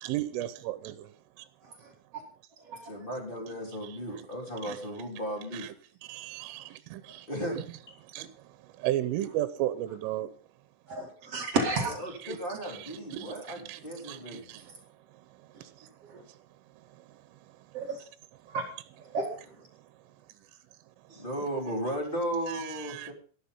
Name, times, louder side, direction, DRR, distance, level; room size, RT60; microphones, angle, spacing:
voice 1, 0.0-1.1 3.8-4.3 4.6-4.8 5.5-5.7 6.1-7.3 7.6-7.7 8.1-8.3 8.8-10.3 12.2-14.7 15.6-15.7 22.5-23.1, right 13 dB, 80° right, 3.2 m, -35 dB
voice 2, 2.8-5.7 7.3-7.6 7.9-8.0 11.8-14.5 21.1-23.1, right 1 dB, 15° left, 2.5 m, -35 dB
voice 3, 10.9-12.0 16.1-16.2 17.7-18.0 18.5-18.6 19.1-19.3, right 3 dB, 55° right, 1.6 m, -31 dB
13.0 x 11.5 x 5.4 m
omnidirectional pair, 5.9 m